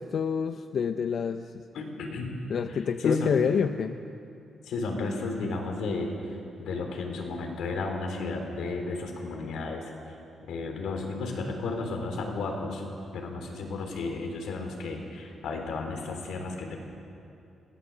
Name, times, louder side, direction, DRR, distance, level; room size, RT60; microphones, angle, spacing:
voice 1, 0.0-1.6 2.5-3.9, left 7 dB, 50° left, 9 dB, 0.5 m, -28 dB
voice 2, 1.7-2.3 2.7-3.4 4.6-10.2 10.4-12.8 13.1-16.8, left 3 dB, 80° left, 2 dB, 3.6 m, -33 dB
22.0 x 16.5 x 7.3 m, 2.7 s
cardioid pair, 160°, 0 cm